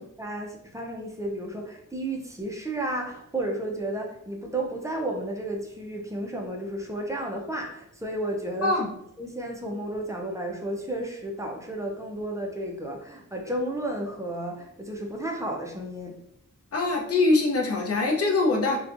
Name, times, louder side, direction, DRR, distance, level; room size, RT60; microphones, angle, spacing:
voice 1, 0.0-8.8 9.2-16.2, right 1 dB, 10° right, 0 dB, 0.3 m, -32 dB
voice 2, 8.6-8.9 16.7-18.8, left 3 dB, 50° left, 0 dB, 0.5 m, -23 dB
2.6 x 2.2 x 2.4 m, 0.78 s
wide cardioid pair, 145°, 31 cm